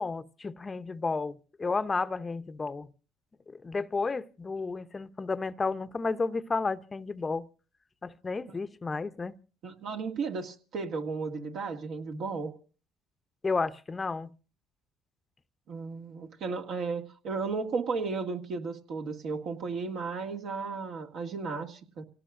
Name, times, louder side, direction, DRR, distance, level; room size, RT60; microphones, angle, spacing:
voice 1, 0.0-2.9 3.5-7.4 8.0-9.3 13.4-14.3, left 4 dB, 30° left, 0.7 m, -32 dB
voice 2, 9.6-12.5 15.7-22.0, right 4 dB, 65° right, 1.9 m, -34 dB
27.5 x 17.5 x 2.5 m
supercardioid pair, 70°, 0 cm